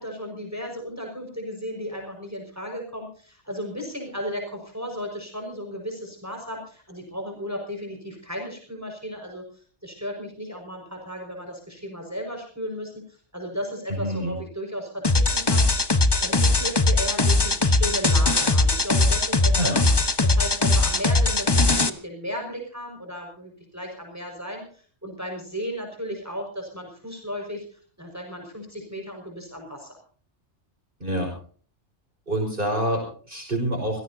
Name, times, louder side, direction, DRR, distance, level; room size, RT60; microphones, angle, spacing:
voice 1, 0.0-9.4 9.8-15.7 16.2-19.7 20.2-27.7 28.0-30.0, equal, 15° right, 2 dB, 5.5 m, -35 dB
voice 2, 13.9-14.4 19.5-19.9 31.0-31.3 32.3-34.0, right 1 dB, 45° right, 0 dB, 5.6 m, -27 dB
sound 1, 15.0-21.9, left 2 dB, 25° left, 1.0 m, -20 dB
26.0 x 17.0 x 2.7 m, 0.44 s
omnidirectional pair, 1.2 m